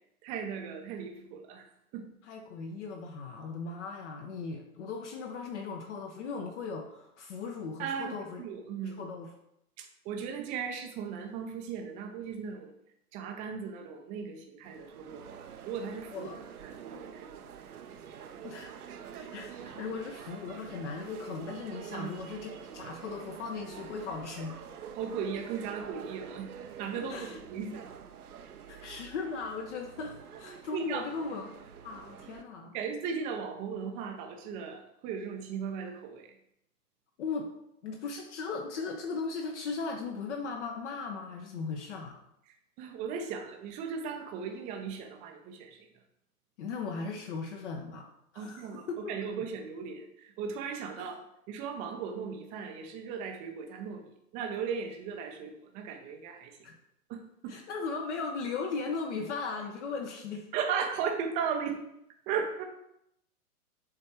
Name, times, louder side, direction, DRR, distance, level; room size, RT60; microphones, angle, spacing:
voice 1, 0.2-1.6 1.9-2.1 7.8-9.0 9.8-12.7 13.1-16.3 16.6-17.4 21.9-22.1 25.0-26.5 26.8-27.8 30.7-31.1 32.7-36.3 42.8-45.9 48.4-51.2 51.5-56.5 57.1-57.6 60.5-61.8 62.3-62.6, right 6 dB, 15° right, 4 dB, 0.5 m, -37 dB
voice 2, 2.2-8.4 8.8-9.3 16.1-16.4 18.4-18.7 19.2-24.6 27.1-27.4 28.7-31.5 31.8-32.7 37.2-37.5 37.8-42.2 46.6-48.1 48.3-49.1 51.0-51.2 56.6-56.7 57.5-60.5, left 4 dB, 50° left, 3 dB, 1.0 m, -38 dB
sound 1, 14.6-32.4, right 8 dB, 75° right, 0.8 m, -47 dB
7.3 x 3.4 x 4.5 m, 0.79 s
hypercardioid pair, 125°, 45 cm